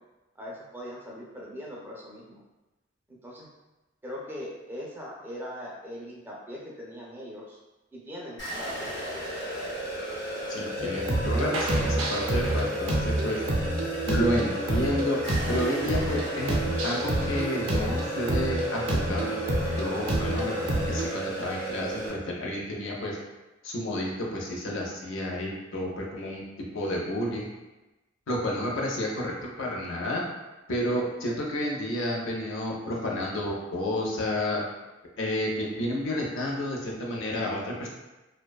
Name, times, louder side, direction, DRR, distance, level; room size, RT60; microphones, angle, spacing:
voice 1, 0.4-2.4 3.2-3.5 4.0-7.6 7.9-8.9, equal, 10° right, -4 dB, 0.4 m, -40 dB
sound 1, 8.4-22.1, right 1 dB, 55° left, 1.0 m, -34 dB
voice 2, 10.5-13.4 14.1-15.2 15.5-19.4 19.8-23.2 23.6-26.4 26.7-27.5 28.3-30.2 30.7-34.6 35.2-37.9, left 1 dB, 70° left, -2 dB, 0.5 m, -30 dB
sound 2, 10.8-21.1, right 1 dB, 75° right, 0.5 m, -28 dB
2.5 x 2.2 x 2.2 m, 1.1 s
head